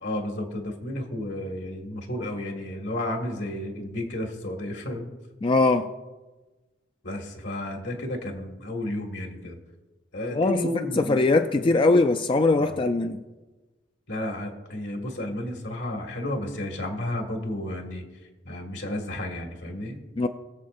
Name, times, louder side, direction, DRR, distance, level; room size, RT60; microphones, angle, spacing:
voice 1, 0.0-5.1 7.0-9.6 10.1-11.2 11.5-11.7 12.6-12.8 14.1-18.0 18.5-20.0, left 1 dB, 75° left, 2 dB, 1.8 m, -32 dB
voice 2, 5.4-5.9 10.3-10.6 10.9-13.2 20.2-20.3, left 3 dB, 30° left, 7 dB, 0.3 m, -21 dB
22.0 x 7.4 x 2.5 m, 1.2 s
head